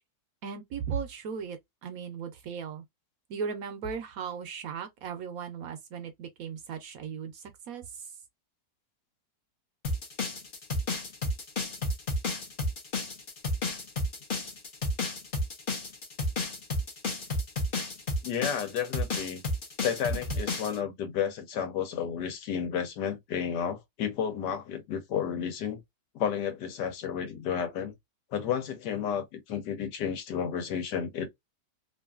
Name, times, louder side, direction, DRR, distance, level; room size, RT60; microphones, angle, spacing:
voice 1, 0.4-2.8 3.3-8.1, right 6 dB, 70° right, 0.9 m, -37 dB
sound 1, 9.8-20.8, left 2 dB, 45° left, 0.7 m, -31 dB
voice 2, 18.2-19.4 19.8-25.8 26.1-27.9 28.3-31.3, left 8 dB, 85° left, 1.4 m, -32 dB
3.0 x 2.5 x 2.3 m
omnidirectional pair, 1.8 m